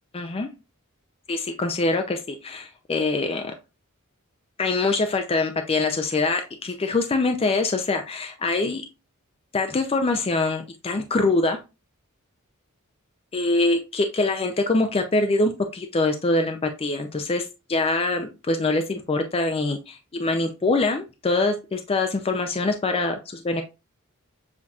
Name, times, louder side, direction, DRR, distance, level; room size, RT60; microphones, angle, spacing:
voice 1, 0.1-0.5 1.3-3.5 4.6-8.8 9.5-11.6 13.3-23.6, left 3 dB, 25° left, 6 dB, 0.4 m, -24 dB
7.1 x 2.8 x 2.4 m, 0.28 s
head